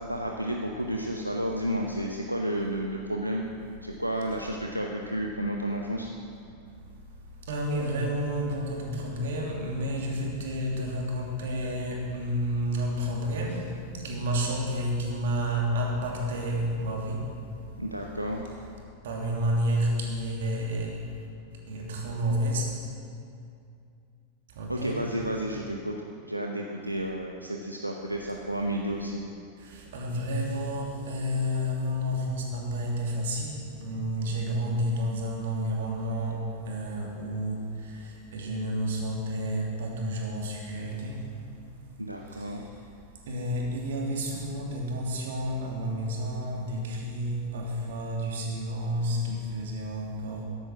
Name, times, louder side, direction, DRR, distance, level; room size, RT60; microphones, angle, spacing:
voice 1, 0.0-3.5 3.8-6.1 17.8-18.4 24.7-26.0 26.3-29.2 42.0-42.6, right 1 dB, 85° right, 1 dB, 0.8 m, -31 dB
voice 2, 7.0-17.6 19.0-21.2 21.7-22.7 24.5-25.0 29.6-41.5 42.3-42.7 43.2-50.4, equal, 60° right, -1 dB, 2.8 m, -30 dB
13.5 x 10.5 x 6.1 m, 2.5 s
figure-of-eight pair, 90°, 0 cm